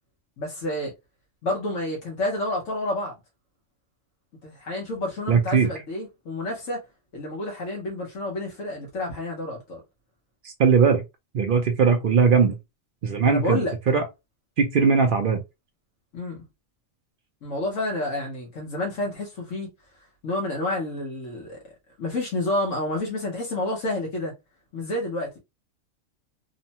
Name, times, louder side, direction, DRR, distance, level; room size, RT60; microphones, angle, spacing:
voice 1, 0.4-0.9 1.4-3.1 4.4-6.8 7.1-9.8 13.2-13.8 16.1-16.4 17.4-19.7 20.2-21.6 22.0-24.3 24.7-25.3, left 1 dB, 70° left, 1.2 m, -29 dB
voice 2, 5.3-5.7 10.4-11.0 11.3-12.6 13.0-14.0 14.6-15.4, right 5 dB, 65° right, 0.5 m, -20 dB
3.0 x 2.1 x 2.7 m
omnidirectional pair, 1.4 m